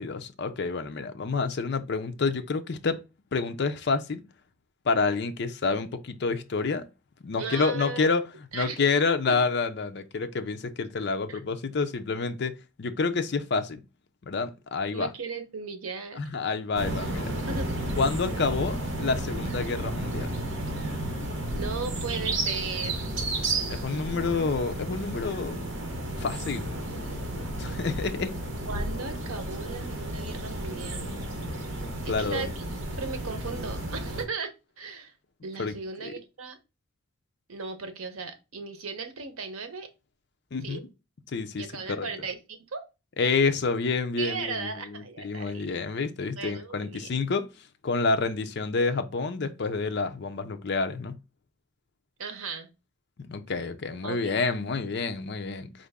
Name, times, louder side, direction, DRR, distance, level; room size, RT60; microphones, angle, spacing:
voice 1, 0.0-3.0 3.3-4.2 4.8-6.8 7.2-8.2 8.5-13.8 14.2-15.1 16.2-17.3 18.0-20.3 23.7-25.6 26.2-26.8 27.6-28.3 32.1-32.5 35.6-35.8 36.0-36.1 40.5-40.8 41.3-42.1 43.2-47.5 47.8-51.2 53.2-55.7, left 4 dB, 55° left, 0.5 m, -28 dB
voice 2, 7.4-8.0 8.5-9.0 9.3-9.4 11.3-11.4 14.9-16.2 17.5-18.0 21.5-23.1 28.7-31.1 32.0-35.1 35.4-36.6 37.5-39.9 40.6-40.8 41.6-42.8 44.2-45.7 46.4-47.1 52.2-52.7 54.0-54.3, right 4 dB, 85° right, 0.8 m, -37 dB
sound 1, 16.7-34.2, right 1 dB, 60° right, 1.0 m, -32 dB
4.6 x 2.5 x 3.4 m
head